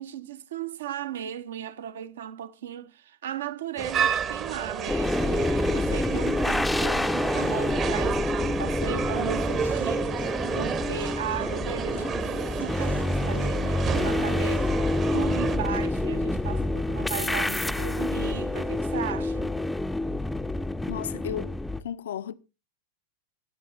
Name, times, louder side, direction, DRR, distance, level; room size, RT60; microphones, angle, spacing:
voice 1, 0.0-14.7 15.1-19.5 20.1-20.2, right 9 dB, 60° right, 0.8 m, -36 dB
sound 1, 3.8-15.6, right 7 dB, 30° right, 0.9 m, -31 dB
sound 2, 4.9-21.8, left 2 dB, 5° left, 0.6 m, -27 dB
sound 3, 9.4-14.7, right 2 dB, 85° right, 1.3 m, -48 dB
voice 2, 20.9-22.3, left 10 dB, 60° left, 0.6 m, -34 dB
24.0 x 9.2 x 2.6 m
figure-of-eight pair, 90°, 0 cm